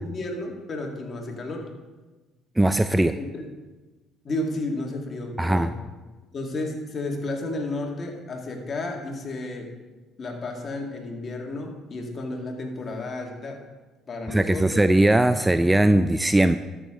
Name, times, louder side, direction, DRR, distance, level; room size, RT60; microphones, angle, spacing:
voice 1, 0.0-1.7 3.0-3.5 4.2-5.8 6.3-9.7 10.2-13.6 14.1-14.8, left 2 dB, 40° left, 1 dB, 2.0 m, -32 dB
voice 2, 2.6-3.2 5.4-5.7 14.3-16.6, right 1 dB, 10° right, 11 dB, 0.3 m, -19 dB
13.0 x 6.3 x 3.7 m, 1.2 s
supercardioid pair, 75°, 0 cm